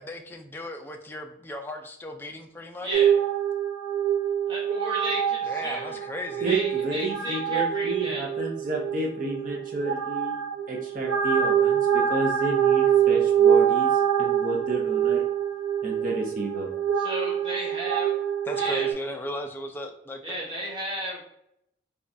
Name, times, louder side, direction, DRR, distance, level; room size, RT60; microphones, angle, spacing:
voice 1, 0.0-3.1 5.4-6.5 18.5-20.4, left 1 dB, 10° left, 3 dB, 0.3 m, -36 dB
voice 2, 2.8-3.1 4.5-6.0 6.4-8.2 17.0-18.1 18.6-18.9 20.2-21.2, right 1 dB, 25° right, -4 dB, 1.2 m, -33 dB
sound 1, 2.9-18.9, right 8 dB, 85° right, 0.7 m, -25 dB
voice 3, 6.4-15.2 15.8-16.7, right 3 dB, 45° right, 0 dB, 0.6 m, -30 dB
5.1 x 2.3 x 2.6 m, 0.77 s
head